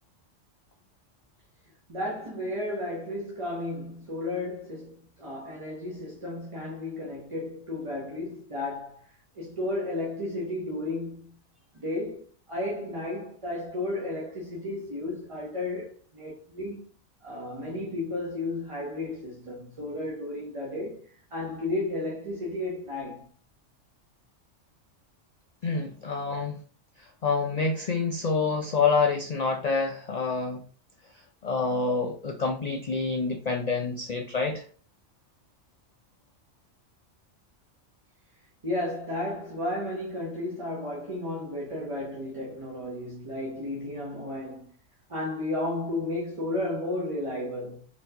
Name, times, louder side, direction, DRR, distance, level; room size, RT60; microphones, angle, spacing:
voice 1, 1.9-11.4 11.7-16.9 17.2-23.3 38.6-44.7 45.1-47.9, left 2 dB, 30° right, 0.7 m, -33 dB
voice 2, 25.6-26.6 27.2-30.6 31.4-34.6, left 4 dB, 85° left, 0.3 m, -27 dB
4.3 x 3.0 x 2.7 m
omnidirectional pair, 1.3 m